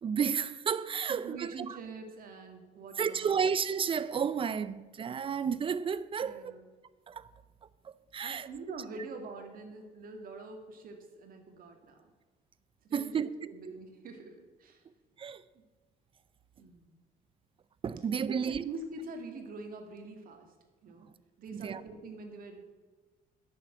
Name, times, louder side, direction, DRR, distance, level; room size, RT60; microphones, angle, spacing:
voice 1, 0.0-1.8 3.0-6.5 7.1-7.3 7.8-8.5 12.9-13.3 15.2-15.4 17.8-18.6 21.5-21.8, right 7 dB, 30° right, 0.5 m, -32 dB
voice 2, 1.1-3.5 6.2-6.7 8.2-12.0 12.8-14.8 15.5-15.6 16.6-16.9 18.2-20.5 20.8-21.1 21.4-22.6, right 3 dB, 55° right, 2.1 m, -45 dB
10.5 x 7.1 x 7.7 m
cardioid pair, 110°, 17 cm